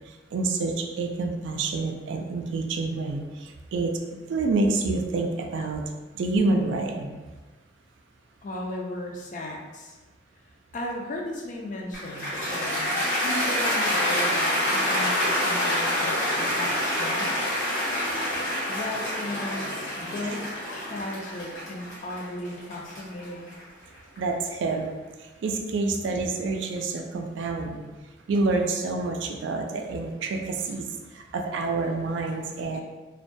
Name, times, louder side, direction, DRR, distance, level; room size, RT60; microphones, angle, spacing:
voice 1, 0.3-4.0 4.3-5.8 6.1-7.2 24.2-27.8 28.3-32.8, right 3 dB, 75° right, 4 dB, 0.3 m, -28 dB
voice 2, 8.4-10.0 10.7-17.6 18.7-23.5 32.7-32.8, left 1 dB, 40° left, 0 dB, 0.3 m, -36 dB
Cheering / Applause, 11.9-24.2, left 1 dB, 80° left, 1.0 m, -27 dB
2.2 x 2.2 x 2.5 m, 1.3 s
head